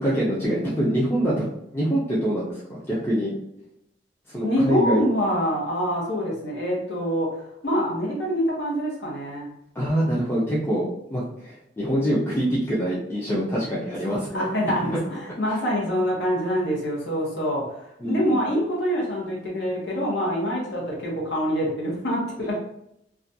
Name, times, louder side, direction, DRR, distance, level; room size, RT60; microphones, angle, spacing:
voice 1, 0.0-1.5 1.7-3.3 4.3-5.0 9.8-14.5 14.8-14.9 15.5-15.6 18.0-18.5 22.4-22.6, equal, 15° left, -7 dB, 0.4 m, -25 dB
voice 2, 4.4-7.4 7.6-9.5 14.0-22.6, equal, 75° left, -3 dB, 0.8 m, -25 dB
2.4 x 2.1 x 2.6 m, 0.80 s
head